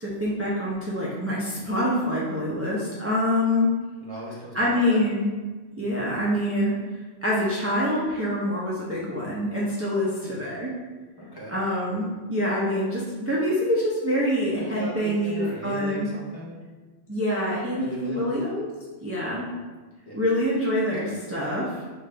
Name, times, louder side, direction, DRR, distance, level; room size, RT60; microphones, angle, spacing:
voice 1, 0.0-3.7 4.5-5.3 5.8-6.7 7.2-10.7 11.5-16.1 17.1-18.7 19.0-19.5 20.1-21.7, left 1 dB, 20° right, -7 dB, 0.4 m, -25 dB
voice 2, 4.0-5.0 10.0-10.4 11.2-11.5 14.6-16.6 17.8-18.3 20.0-20.2 21.0-21.2, equal, 20° left, -6 dB, 0.8 m, -38 dB
5.2 x 2.5 x 3.3 m, 1.3 s
omnidirectional pair, 1.2 m